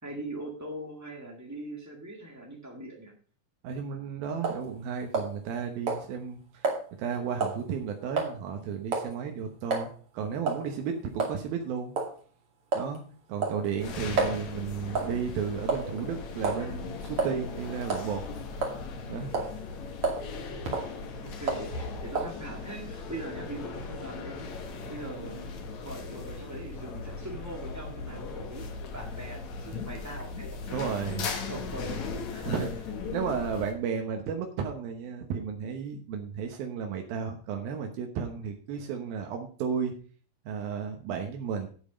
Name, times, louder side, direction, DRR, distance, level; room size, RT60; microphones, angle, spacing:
voice 1, 0.0-3.1 20.8-24.5 24.9-25.5 25.8-31.2 31.5-32.5, right 1 dB, 15° right, -1 dB, 0.6 m, -41 dB
voice 2, 3.6-6.7 7.0-11.9 12.7-13.0 13.3-18.2 19.1-19.3 20.4-20.6 30.7-31.3 32.5-32.7 33.1-40.0 40.5-41.7, right 6 dB, 85° right, 3 dB, 3.0 m, -33 dB
sound 1, 4.4-4.6 5.1-5.6 5.9-6.0 6.6-6.8 7.4-7.6 8.2-8.3 8.9-9.1 9.7-9.9 10.5-10.7 11.2-11.4 12.0-12.1 12.7-13.0 13.4-14.4 15.0-15.2 15.7-16.0 16.4-16.6 17.2-17.4 17.8-18.1 18.6-19.0 19.3-19.5 20.0-20.3 20.6-20.9 21.5-21.7 22.2-22.4, right 3 dB, 40° right, 3.0 m, -29 dB
sound 2, 13.8-33.7, left 4 dB, 60° left, 2.6 m, -38 dB
9.7 x 8.6 x 5.1 m, 0.41 s
omnidirectional pair, 4.1 m